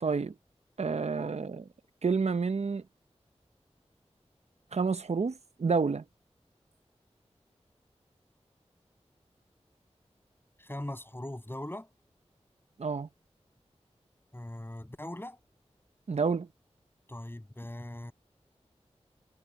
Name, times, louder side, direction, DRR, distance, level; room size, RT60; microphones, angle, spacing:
voice 1, 0.0-0.3 0.8-1.7 2.0-2.8 4.7-6.0 12.8-13.1 16.1-16.5, right 5 dB, 70° right, 0.8 m, -29 dB
voice 2, 10.6-11.9 14.3-15.4 17.1-18.1, left 1 dB, 20° left, 6.8 m, -40 dB
wide cardioid pair, 65°, 11 cm